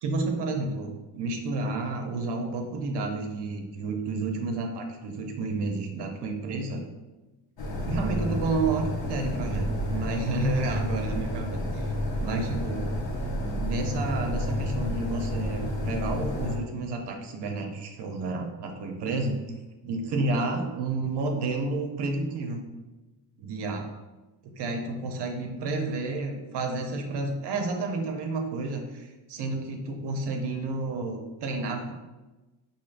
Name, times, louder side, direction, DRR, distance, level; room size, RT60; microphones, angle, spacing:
voice 1, 0.0-6.8 7.8-11.9 12.2-12.9 13.4-19.4 19.8-22.6 23.4-23.9 24.4-31.9, right 3 dB, 70° right, 3 dB, 0.6 m, -30 dB
sound 1, 7.6-16.6, equal, 60° left, 0.8 m, -30 dB
4.5 x 2.7 x 2.4 m, 1.1 s
cardioid pair, 130°, 42 cm